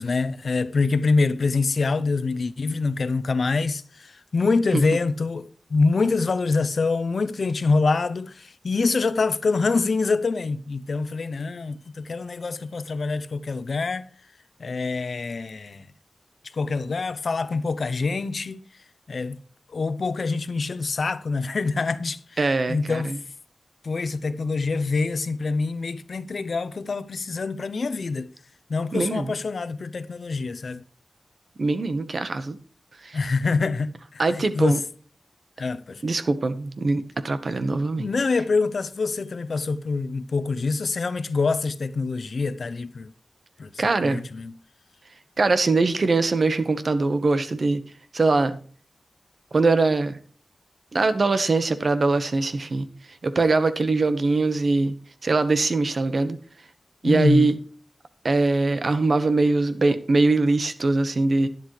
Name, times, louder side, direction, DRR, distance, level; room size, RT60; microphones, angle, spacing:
voice 1, 0.0-14.1 14.6-15.9 16.5-18.6 19.1-19.4 19.7-22.4 22.7-23.1 23.8-28.3 28.7-30.8 33.1-34.8 35.6-36.0 38.0-43.1 43.6-44.5 57.0-57.5, left 4 dB, 65° left, 0.7 m, -25 dB
voice 2, 22.4-23.2 28.9-29.3 31.6-32.6 33.0-33.2 34.2-34.8 36.0-38.1 43.8-44.3 45.4-47.8 48.1-48.6 49.5-50.2 50.9-52.9 53.2-54.9 55.2-56.4 57.0-57.6 58.2-61.5, right 3 dB, 55° right, 1.2 m, -22 dB
11.5 x 10.5 x 3.2 m
wide cardioid pair, 100°, 0 cm